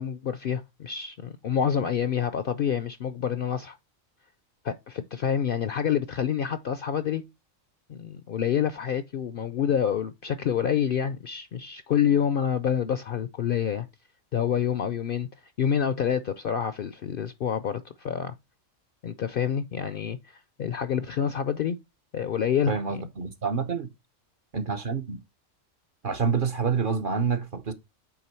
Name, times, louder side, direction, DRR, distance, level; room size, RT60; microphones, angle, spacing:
voice 1, 0.0-3.8 4.6-7.2 7.9-13.9 14.3-15.3 15.6-18.3 19.0-21.8 22.1-22.8, left 8 dB, 60° left, 0.6 m, -27 dB
voice 2, 22.7-23.9 24.5-25.2 26.0-27.7, right 5 dB, 50° right, 0.7 m, -27 dB
8.7 x 3.5 x 4.3 m
omnidirectional pair, 1.4 m